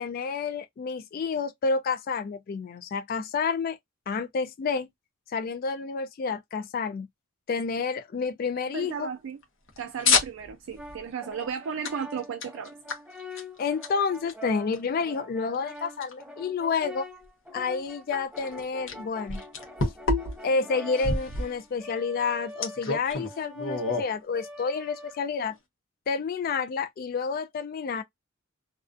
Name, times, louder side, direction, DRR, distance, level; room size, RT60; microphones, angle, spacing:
voice 1, 0.0-3.8 4.1-4.9 5.3-7.1 7.5-9.1 13.6-17.1 17.5-19.4 20.4-25.5 26.1-28.0, left 5 dB, 45° left, 0.3 m, -29 dB
voice 2, 8.7-9.4 9.8-12.7, right 7 dB, 65° right, 0.3 m, -34 dB
sound 1, 9.4-11.1 11.8-11.9 12.2-14.3 14.7-14.8 15.5-15.6 16.0-16.1 18.1-18.9 19.3-20.5 20.9-21.5 22.6-24.0, left 4 dB, 60° left, 0.7 m, -27 dB
Brass instrument, 10.8-25.6, equal, 5° right, 0.5 m, -44 dB
2.3 x 2.3 x 2.4 m
head